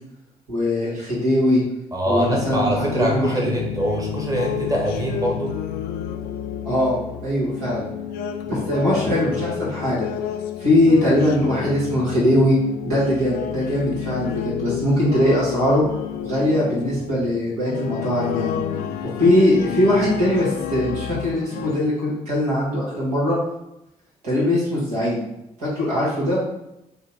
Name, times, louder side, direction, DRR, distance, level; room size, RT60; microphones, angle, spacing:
voice 1, 0.5-1.6 2.0-3.4 6.6-7.9 8.5-10.1 10.6-12.6 12.8-15.8 16.2-18.6 19.2-23.4 24.2-25.3 25.6-26.4, left 1 dB, 80° right, -7 dB, 1.4 m, -21 dB
voice 2, 1.9-5.6 10.2-10.3, right 1 dB, 20° right, -1 dB, 1.1 m, -24 dB
sound 1, 2.2-21.8, left 9 dB, 60° left, 0.4 m, -30 dB
4.2 x 2.2 x 4.1 m, 0.88 s
figure-of-eight pair, 45°, 19 cm